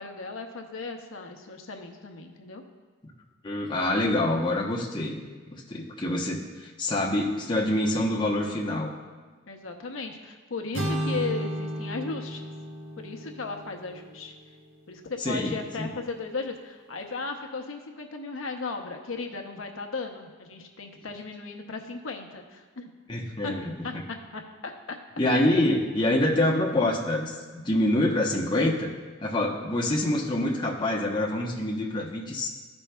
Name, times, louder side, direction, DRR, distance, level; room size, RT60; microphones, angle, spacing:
voice 1, 0.0-2.6 9.5-12.5 13.0-14.3 14.9-22.9 23.4-23.5 23.8-23.9 24.3-25.0, left 3 dB, 85° left, 3 dB, 0.8 m, -36 dB
voice 2, 3.4-5.2 5.5-8.9 15.2-15.9 23.1-24.0 25.2-28.9 29.2-32.5, left 1 dB, 25° left, -3 dB, 0.9 m, -26 dB
sound 1, 10.7-14.8, equal, 80° right, 1.1 m, -34 dB
13.0 x 5.3 x 2.3 m, 1.4 s
head